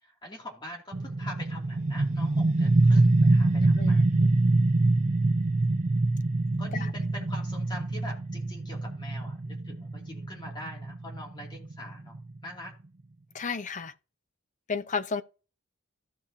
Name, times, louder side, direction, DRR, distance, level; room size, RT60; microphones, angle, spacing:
voice 1, 0.0-4.1 6.6-12.7, left 1 dB, 20° left, 2.6 m, -44 dB
sound 1, 0.9-12.4, right 2 dB, 35° right, 0.5 m, -25 dB
voice 2, 3.8-4.3 6.7-6.9 13.3-13.9 14.7-15.2, left 5 dB, 40° left, 0.7 m, -33 dB
15.5 x 5.5 x 2.8 m
head